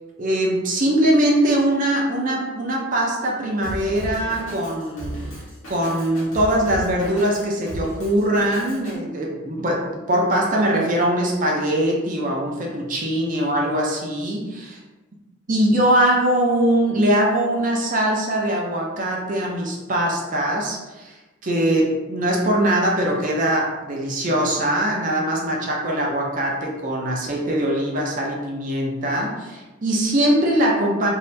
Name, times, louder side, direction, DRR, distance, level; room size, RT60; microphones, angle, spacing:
voice 1, 0.2-5.2 5.7-14.6 15.5-31.1, right 1 dB, 40° right, -2 dB, 0.6 m, -22 dB
Drum kit, 3.6-8.9, equal, 90° left, 1.1 m, -35 dB
2.7 x 2.7 x 3.3 m, 1.1 s
head